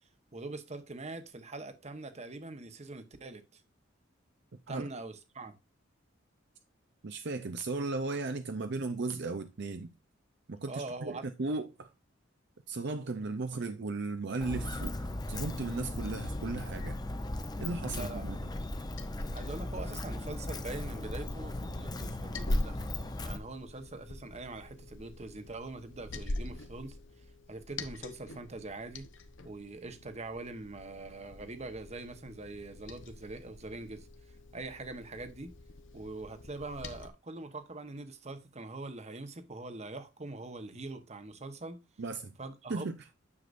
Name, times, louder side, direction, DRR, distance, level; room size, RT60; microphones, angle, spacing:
voice 1, 0.3-3.6 4.7-5.5 10.7-11.3 17.9-18.4 19.3-22.8 23.2-27.0 27.5-29.1 29.4-34.1 34.5-35.5 35.9-41.8 42.4-42.9, right 2 dB, 35° right, 1.1 m, -43 dB
voice 2, 7.0-9.9 10.5-11.9 12.7-17.0 17.6-18.4 42.0-42.3 42.7-43.0, right 3 dB, 60° right, 0.6 m, -36 dB
Walk footsteps, 14.4-23.4, left 1 dB, 20° left, 0.8 m, -37 dB
Liquid, 18.5-37.1, left 1 dB, 70° left, 1.0 m, -43 dB
9.7 x 6.8 x 2.6 m
head